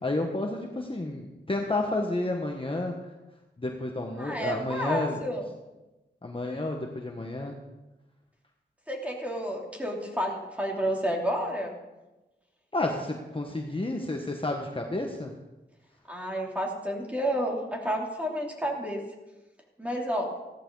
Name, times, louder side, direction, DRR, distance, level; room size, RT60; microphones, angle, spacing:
voice 1, 0.0-2.9 3.6-5.2 6.2-7.6 12.7-15.3, left 2 dB, 30° left, 1 dB, 1.4 m, -31 dB
voice 2, 4.2-5.5 8.9-11.8 16.1-19.0 19.8-20.3, equal, 5° right, -1 dB, 3.3 m, -30 dB
15.5 x 13.5 x 4.0 m, 1.1 s
wide cardioid pair, 65°, 19 cm